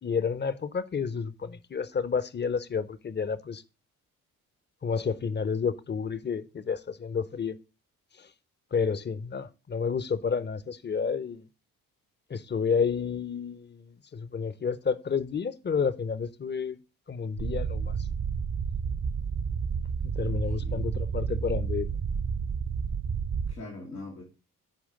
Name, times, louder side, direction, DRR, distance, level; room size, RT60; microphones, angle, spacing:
voice 1, 0.0-3.6 4.8-7.6 8.2-8.3 8.7-11.4 12.3-16.8 17.1-18.1 20.0-22.0, left 6 dB, 25° left, 0.7 m, -30 dB
sound 1, 17.4-23.5, right 6 dB, 30° right, 0.7 m, -30 dB
voice 2, 20.3-20.8 23.5-24.2, left 1 dB, 90° left, 1.7 m, -42 dB
10.5 x 4.8 x 3.7 m
figure-of-eight pair, 40°, 45 cm